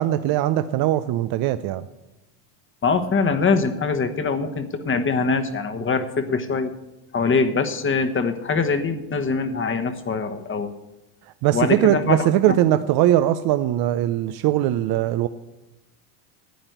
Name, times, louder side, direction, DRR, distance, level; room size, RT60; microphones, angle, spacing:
voice 1, 0.0-1.8 11.4-15.3, right 13 dB, 50° right, 12 dB, 0.6 m, -20 dB
voice 2, 2.8-6.7 7.1-10.7 11.5-12.6, left 4 dB, 25° left, 8 dB, 1.2 m, -23 dB
10.5 x 8.8 x 8.0 m, 0.96 s
supercardioid pair, 95°, 48 cm